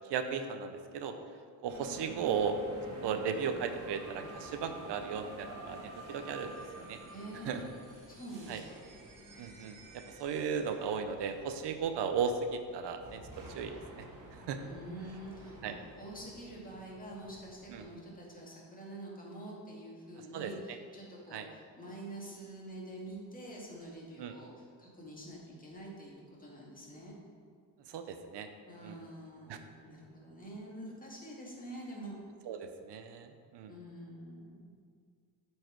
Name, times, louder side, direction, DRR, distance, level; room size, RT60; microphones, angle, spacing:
voice 1, 0.1-1.1 1.6-2.6 3.0-7.0 7.5-7.6 8.5-8.6 9.4-14.0 14.5-14.6 15.6-15.7 17.7-17.8 20.3-20.5 21.3-21.5 24.2-24.3 27.9-28.5 28.8-29.0 29.5-29.6 32.5-32.6 32.8-33.3 33.5-33.7, right 6 dB, 75° right, 7 dB, 0.7 m, -36 dB
sound 1, 1.7-17.8, right 1 dB, 45° right, 1.6 m, -50 dB
voice 2, 7.1-7.7 8.1-8.8 14.6-27.1 28.7-32.2 33.7-34.6, right 1 dB, 20° left, -3 dB, 2.0 m, -46 dB
7.6 x 4.7 x 4.6 m, 2.1 s
cardioid pair, 95°, 42 cm